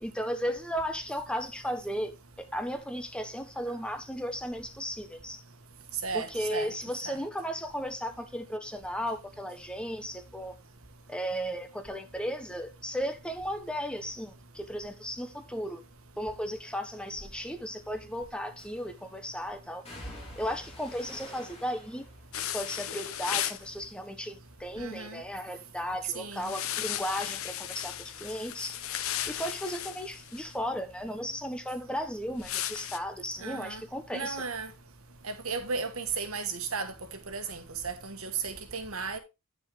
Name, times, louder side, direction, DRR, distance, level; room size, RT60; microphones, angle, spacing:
voice 1, 0.0-5.4 6.1-10.6 11.1-15.8 16.2-20.1 20.4-22.0 22.4-28.8 29.3-34.4, equal, 5° left, 1.1 m, -35 dB
voice 2, 6.0-6.7 7.0-7.2 24.8-25.2 26.1-26.5 33.4-33.8 34.1-34.7 35.2-36.9 37.3-39.2, right 5 dB, 70° right, 1.7 m, -35 dB
sound 1, 17.1-17.3 18.6-19.0 19.9-24.1 24.4-25.0 25.4-28.7 29.0-30.1 30.4-30.5, left 1 dB, 30° left, 3.6 m, -50 dB
sound 2, 22.3-23.7 26.4-30.5 32.4-33.0, left 11 dB, 65° left, 0.8 m, -35 dB
10.0 x 7.0 x 3.6 m
head